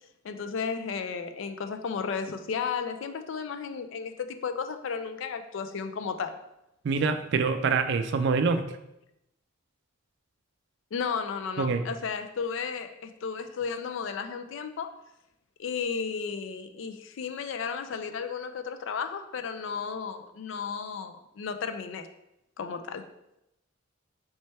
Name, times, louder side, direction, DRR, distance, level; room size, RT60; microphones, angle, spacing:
voice 1, 0.2-6.4 10.9-14.9 15.6-22.1 22.6-23.1, left 6 dB, 60° left, 8 dB, 0.3 m, -34 dB
voice 2, 6.8-8.6 11.6-11.8, right 4 dB, 55° right, 9 dB, 0.3 m, -25 dB
3.3 x 3.2 x 4.2 m, 0.85 s
head